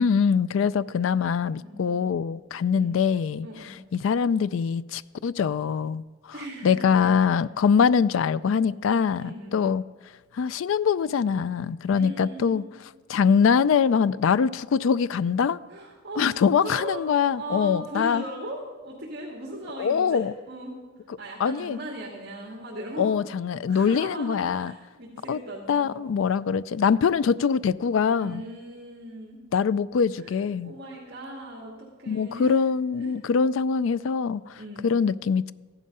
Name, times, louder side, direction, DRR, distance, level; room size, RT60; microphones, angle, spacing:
voice 1, 0.0-3.5 3.9-6.3 6.6-9.8 10.3-12.6 13.1-15.6 16.2-18.2 19.8-20.3 21.4-21.8 23.0-24.7 25.3-25.4 25.7-28.4 29.5-30.7 32.1-35.5, left 6 dB, 75° left, 0.3 m, -23 dB
voice 2, 1.6-2.1 2.7-2.9 3.4-3.8 6.3-7.1 9.2-9.7 11.9-12.7 15.7-17.0 17.3-20.8 21.2-23.2 23.7-25.9 28.2-29.4 30.2-32.6 33.0-33.2 34.6-35.0, right 1 dB, 50° right, 2.3 m, -38 dB
14.5 x 11.0 x 5.4 m
head